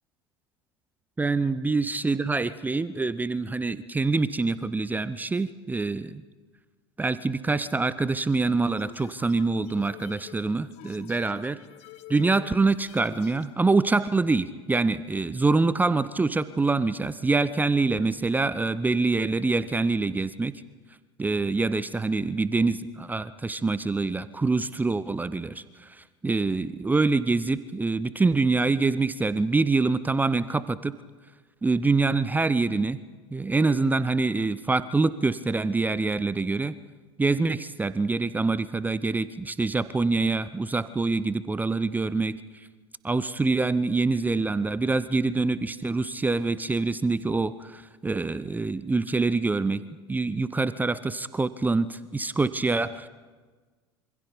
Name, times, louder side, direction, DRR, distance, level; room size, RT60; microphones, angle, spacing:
voice 1, 1.2-6.2 7.0-11.6 12.1-20.6 21.2-30.9 31.6-33.0 33.3-36.7 37.2-42.4 43.0-49.8 50.1-53.1, right 3 dB, 10° right, 16 dB, 0.7 m, -25 dB
sound 1, 8.6-13.5, left 13 dB, 50° left, 1.6 m, -48 dB
26.5 x 25.0 x 5.3 m, 1.4 s
figure-of-eight pair, 70°, 14 cm